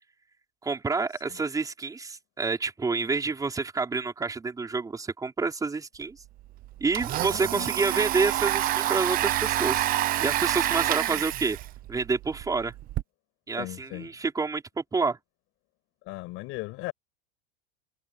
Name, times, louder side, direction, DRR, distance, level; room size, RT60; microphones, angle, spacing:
voice 1, 0.6-6.2 6.8-9.8 10.2-11.6 11.9-12.7 13.5-15.2, right 4 dB, 10° right, 5.4 m, -28 dB
Domestic sounds home sounds, 6.0-6.1 6.4-13.0, right 14 dB, 25° right, 0.9 m, -28 dB
voice 2, 13.6-14.1 16.1-16.9, left 21 dB, 45° left, 6.0 m, -37 dB
supercardioid pair, 165°, 32 cm